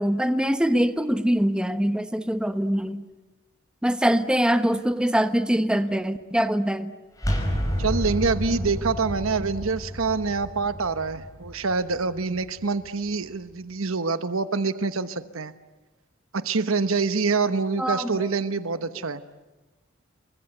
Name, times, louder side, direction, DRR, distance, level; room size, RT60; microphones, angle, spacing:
voice 1, 0.0-3.0 3.8-6.9 8.5-8.6 17.8-18.1, equal, 5° right, 10 dB, 1.1 m, -23 dB
sound 1, 7.2-12.9, equal, 15° left, 5.5 m, -30 dB
voice 2, 7.8-15.5 16.3-19.2, right 4 dB, 70° right, 12 dB, 1.1 m, -26 dB
29.5 x 23.5 x 8.0 m, 1.2 s
head